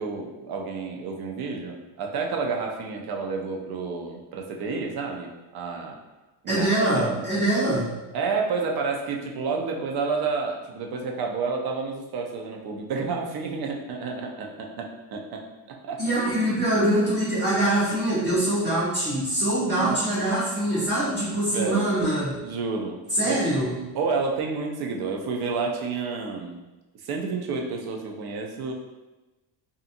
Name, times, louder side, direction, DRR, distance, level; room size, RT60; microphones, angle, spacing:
voice 1, 0.0-6.0 6.4-7.2 8.1-16.4 16.7-16.8 19.8-20.0 21.5-21.9 22.4-23.0 23.2-23.4 23.9-26.6 27.0-28.7, right 4 dB, 55° right, 1 dB, 0.6 m, -30 dB
voice 2, 6.5-7.9 16.0-22.4 23.1-23.7, right 1 dB, 25° right, -13 dB, 1.0 m, -24 dB
2.7 x 2.5 x 2.5 m, 1.1 s
cardioid pair, 130°, 46 cm